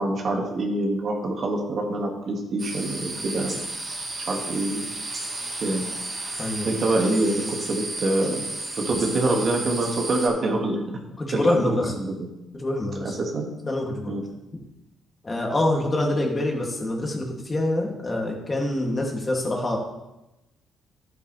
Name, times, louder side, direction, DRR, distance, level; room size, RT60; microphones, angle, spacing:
voice 1, 0.0-3.6 4.3-4.9 5.6-5.9 6.7-8.4 8.8-11.0 11.3-12.3 13.0-13.5 14.1-14.3, right 2 dB, 50° right, 1 dB, 1.9 m, -25 dB
sound 1, 2.6-10.3, right 2 dB, 35° right, 3.1 m, -33 dB
voice 2, 6.4-6.7 11.2-12.0 12.5-13.1 13.7-14.2 15.2-19.8, left 1 dB, 25° left, 0 dB, 2.3 m, -25 dB
11.5 x 8.1 x 3.3 m, 0.95 s
cardioid pair, 90°, 0 cm